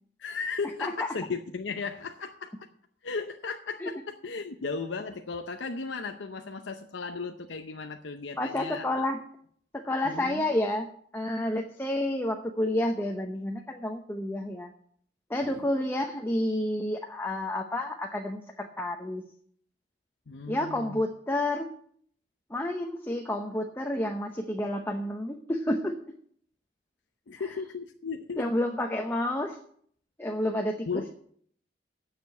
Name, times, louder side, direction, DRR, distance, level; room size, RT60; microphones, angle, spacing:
voice 1, 0.2-2.7 3.0-9.0 10.0-10.4 15.5-15.7 20.3-21.0 27.3-28.5 30.9-31.1, left 4 dB, 85° left, 5 dB, 0.7 m, -36 dB
voice 2, 0.8-1.1 3.8-3.9 8.4-9.2 9.7-10.9 11.1-14.7 15.3-19.2 20.5-21.7 22.5-26.0 28.4-29.6 30.2-30.9, left 1 dB, 10° left, 3 dB, 0.8 m, -30 dB
9.3 x 6.8 x 8.3 m, 0.62 s
head